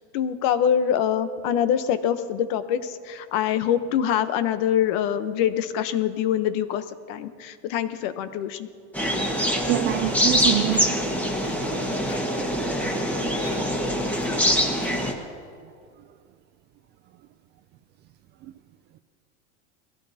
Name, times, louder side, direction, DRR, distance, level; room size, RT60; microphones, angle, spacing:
voice 1, 0.1-8.7, left 9 dB, 55° left, 1.0 m, -24 dB
sound 1, 8.9-15.1, equal, 5° left, 1.5 m, -24 dB
sound 2, 9.4-9.7 10.1-10.3 10.6-10.8 11.4-11.8 12.1-12.3 12.8-13.2 13.4-13.8 14.1-14.3 14.8-15.2 15.8-15.9, left 5 dB, 30° left, 1.5 m, -41 dB
voice 2, 9.7-11.0, right 15 dB, 30° right, 0.4 m, -24 dB
21.5 x 16.5 x 2.8 m
supercardioid pair, 145°, 38 cm